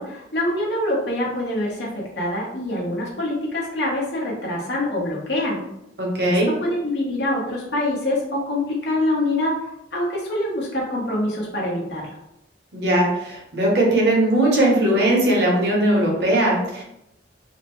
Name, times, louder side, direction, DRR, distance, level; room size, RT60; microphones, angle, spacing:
voice 1, 0.0-5.6 6.2-9.5 9.9-12.1, left 1 dB, 70° left, -4 dB, 0.9 m, -25 dB
voice 2, 6.0-6.5 12.7-16.8, right 1 dB, 65° right, -2 dB, 0.8 m, -19 dB
2.6 x 2.1 x 3.0 m, 0.84 s
head